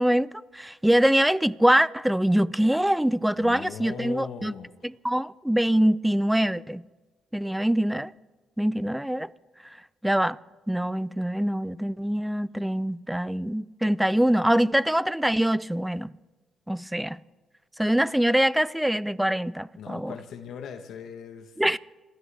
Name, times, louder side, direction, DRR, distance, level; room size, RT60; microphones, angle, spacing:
voice 1, 0.0-4.5 4.8-6.8 7.3-8.1 8.6-9.3 10.0-10.4 10.7-16.1 16.7-17.2 17.8-20.1 21.6-21.8, right 1 dB, 5° right, 0.4 m, -24 dB
voice 2, 3.4-4.7 19.8-21.5, left 7 dB, 75° left, 1.1 m, -39 dB
27.0 x 13.0 x 3.4 m
cardioid pair, 90°, 0 cm